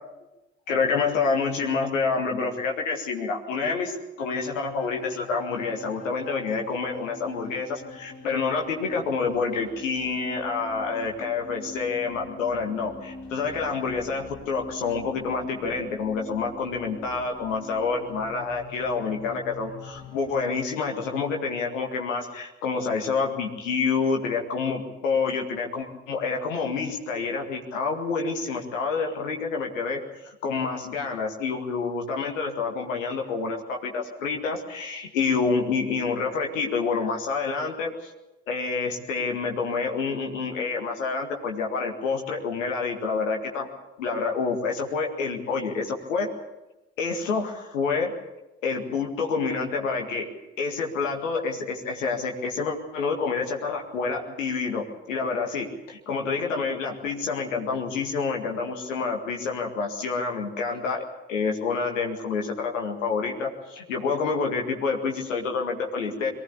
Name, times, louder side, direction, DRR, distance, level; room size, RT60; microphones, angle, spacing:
voice 1, 0.7-38.1 38.5-43.7 44.0-46.3 47.0-48.1 48.6-50.3 50.6-66.3, left 4 dB, 80° left, 2 dB, 2.0 m, -28 dB
sound 1, 4.2-20.5, left 3 dB, 40° left, 4.1 m, -44 dB
22.5 x 17.0 x 8.3 m, 0.99 s
figure-of-eight pair, 40°, 38 cm